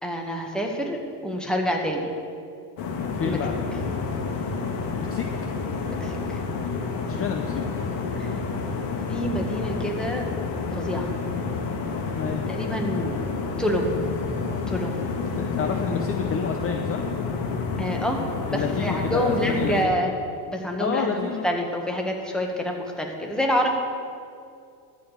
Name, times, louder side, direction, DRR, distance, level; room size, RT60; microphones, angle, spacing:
voice 1, 0.0-2.1 3.2-3.4 5.9-6.4 8.2-8.3 9.1-10.2 10.7-11.1 12.5-13.2 13.6-13.9 14.7-15.1 17.8-18.2 18.5-20.1 20.5-23.7, equal, ahead, 1 dB, 1.6 m, -27 dB
sound 1, 2.8-19.9, left 4 dB, 65° left, 1.8 m, -29 dB
voice 2, 3.1-3.5 5.0-5.3 7.0-7.6 12.2-12.4 15.2-17.0 18.5-20.1 20.8-21.5, left 6 dB, 30° left, 4 dB, 0.7 m, -29 dB
13.0 x 5.2 x 8.1 m, 2.4 s
supercardioid pair, 110°, 48 cm